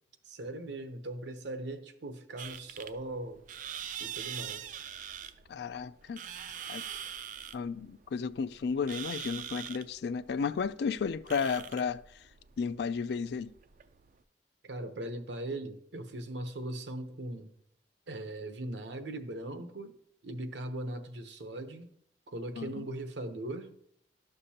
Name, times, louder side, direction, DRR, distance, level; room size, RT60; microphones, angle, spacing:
voice 1, 0.3-3.4 4.0-4.7 14.6-17.5 18.1-19.9 20.2-21.9 22.3-23.7, right 1 dB, 75° right, 0.8 m, -39 dB
sound 1, 2.4-14.2, right 9 dB, 45° right, 0.3 m, -43 dB
voice 2, 5.5-6.2 6.7-6.8 7.5-12.0 12.6-13.5 22.6-22.9, left 5 dB, 60° left, 0.3 m, -33 dB
12.0 x 6.6 x 2.8 m
head